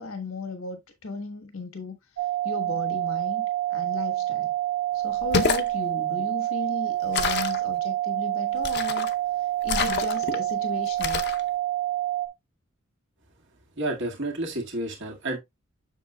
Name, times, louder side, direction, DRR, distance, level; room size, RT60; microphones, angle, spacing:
voice 1, 0.0-2.0 2.4-4.5 4.9-9.1 9.4-11.2, left 3 dB, 85° left, 1.3 m, -35 dB
sound 1, 2.2-12.3, right 15 dB, 80° right, 2.3 m, -27 dB
sound 2, 5.2-5.7 7.1-7.6 8.6-9.1 9.7-10.4 11.0-11.4, left 5 dB, 55° left, 0.7 m, -27 dB
voice 2, 13.8-15.4, right 2 dB, 60° right, 2.0 m, -30 dB
7.6 x 6.5 x 2.2 m
head